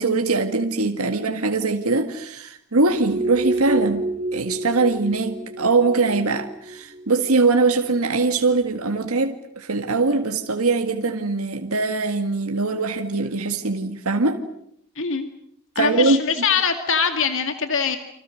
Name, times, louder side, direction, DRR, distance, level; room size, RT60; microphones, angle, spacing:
voice 1, 0.0-4.0 4.3-14.4 15.8-16.2, right 3 dB, 85° right, 1.8 m, -22 dB
sound 1, 2.8-9.0, right 2 dB, 30° right, 2.7 m, -30 dB
voice 2, 15.0-15.3 15.8-18.0, left 6 dB, 65° left, 2.2 m, -22 dB
30.0 x 26.0 x 6.5 m
head